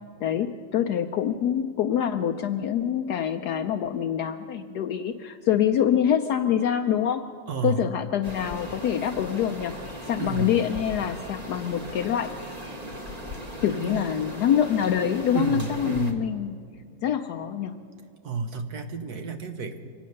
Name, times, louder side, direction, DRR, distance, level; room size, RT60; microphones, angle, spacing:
voice 1, 0.2-7.3 7.6-9.8 10.1-12.5 13.6-16.6 17.0-17.8, left 9 dB, 70° left, 5 dB, 0.9 m, -25 dB
voice 2, 7.5-7.9 10.2-10.6 13.8-14.3 15.3-16.2 18.2-19.9, right 4 dB, 60° right, 7 dB, 1.1 m, -31 dB
sound 1, 8.2-16.1, equal, 25° right, 1.1 m, -38 dB
24.5 x 9.2 x 6.4 m, 2.4 s
omnidirectional pair, 2.2 m